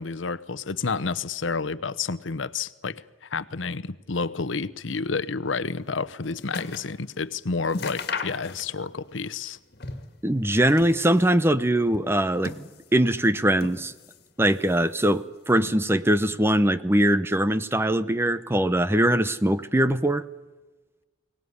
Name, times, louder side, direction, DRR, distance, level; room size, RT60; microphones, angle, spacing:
voice 1, 0.0-3.0 3.3-9.6, left 4 dB, 80° left, 16 dB, 0.9 m, -30 dB
sound 1, 5.8-7.0 7.3-7.4 7.7-9.0 9.3-10.2 10.6-11.4 12.1-13.1 13.6-14.3 14.6-15.3 16.0-16.1, left 4 dB, 55° left, 2.1 m, -37 dB
voice 2, 10.2-12.5 12.9-13.9 14.4-20.2, right 1 dB, 15° right, 13 dB, 0.8 m, -22 dB
23.5 x 18.5 x 9.7 m, 1.2 s
head